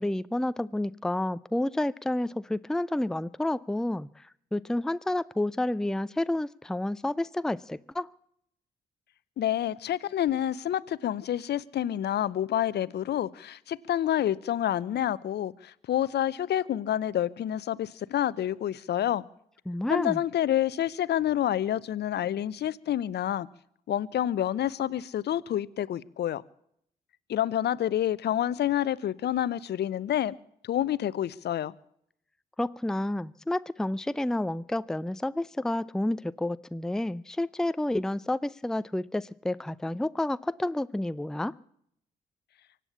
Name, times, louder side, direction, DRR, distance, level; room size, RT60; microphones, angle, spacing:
voice 1, 0.0-8.1 19.7-20.2 32.6-41.5, left 1 dB, 5° left, 0.5 m, -30 dB
voice 2, 9.4-19.2 19.9-23.5 23.9-26.4 27.3-30.4 30.6-31.7, left 11 dB, 60° left, 0.7 m, -28 dB
24.5 x 8.4 x 7.0 m
hypercardioid pair, 45°, 20 cm